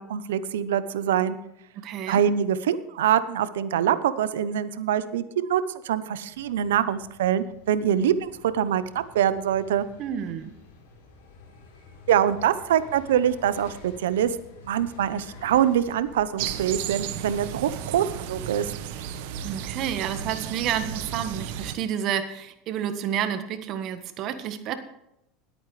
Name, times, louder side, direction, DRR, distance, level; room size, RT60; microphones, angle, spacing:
voice 1, 0.0-1.3 2.1-9.9 12.1-14.4 14.6-18.7, right 9 dB, 90° right, 14 dB, 0.8 m, -24 dB
voice 2, 1.8-2.2 10.0-10.5 19.4-24.8, right 9 dB, 55° right, 9 dB, 1.4 m, -30 dB
sound 1, 6.3-17.8, left 3 dB, 85° left, 3.7 m, -49 dB
sound 2, 16.4-21.7, right 9 dB, 75° right, 1.1 m, -34 dB
20.5 x 8.8 x 3.3 m, 0.83 s
supercardioid pair, 105°, 0 cm